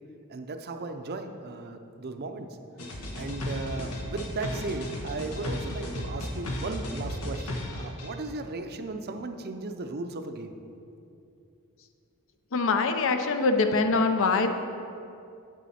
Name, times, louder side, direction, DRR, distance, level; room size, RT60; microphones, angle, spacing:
voice 1, 0.3-2.5 3.1-10.6, right 3 dB, 45° right, 7 dB, 0.5 m, -36 dB
sound 1, 2.8-8.1, left 1 dB, 90° left, 1.2 m, -34 dB
voice 2, 12.5-14.5, left 3 dB, 60° left, 7 dB, 0.6 m, -23 dB
9.1 x 7.5 x 4.2 m, 2.6 s
head